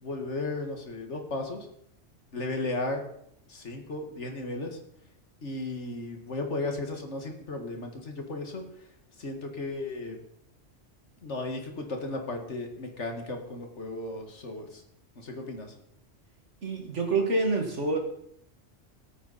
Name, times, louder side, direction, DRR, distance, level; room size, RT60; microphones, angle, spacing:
voice 1, 0.0-1.7 2.3-3.0 3.5-4.8 5.4-8.6 9.2-10.2 11.2-14.8 15.2-15.7, left 2 dB, 65° left, 3 dB, 2.2 m, -35 dB
voice 2, 16.6-18.0, right 3 dB, 70° right, 2 dB, 2.4 m, -27 dB
19.0 x 8.9 x 4.2 m, 0.73 s
omnidirectional pair, 1.3 m